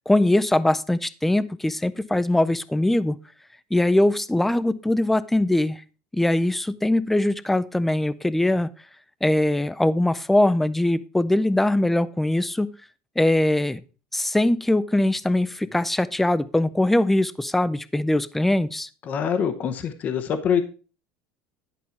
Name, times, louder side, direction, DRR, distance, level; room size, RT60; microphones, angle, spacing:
voice 1, 0.1-3.2 3.7-5.8 6.1-8.7 9.2-12.7 13.2-13.8 14.1-18.9, left 1 dB, 5° left, 17 dB, 0.4 m, -21 dB
voice 2, 19.1-20.6, left 7 dB, 35° left, 10 dB, 0.8 m, -24 dB
11.0 x 5.4 x 4.5 m, 0.35 s
cardioid pair, 150°, 5 cm